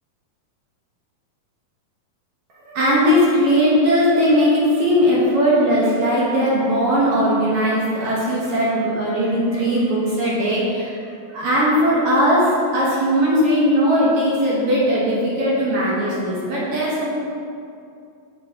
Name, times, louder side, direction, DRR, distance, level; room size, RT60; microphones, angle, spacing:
voice 1, 2.6-17.2, equal, 80° right, -6 dB, 1.3 m, -19 dB
8.3 x 5.6 x 3.6 m, 2.5 s
omnidirectional pair, 4.3 m